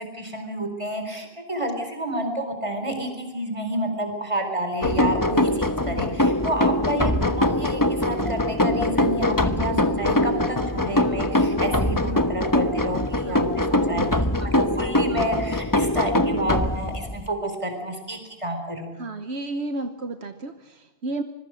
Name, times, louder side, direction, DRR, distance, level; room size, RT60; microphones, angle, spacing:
voice 1, 0.1-13.4 13.7-14.1 14.4-19.0, right 1 dB, 30° right, 5 dB, 4.5 m, -29 dB
sound 1, 4.8-17.3, left 1 dB, 20° left, 1.1 m, -23 dB
voice 2, 19.0-21.2, right 2 dB, 75° right, 8 dB, 1.4 m, -32 dB
25.5 x 22.0 x 6.4 m, 0.99 s
omnidirectional pair, 1.1 m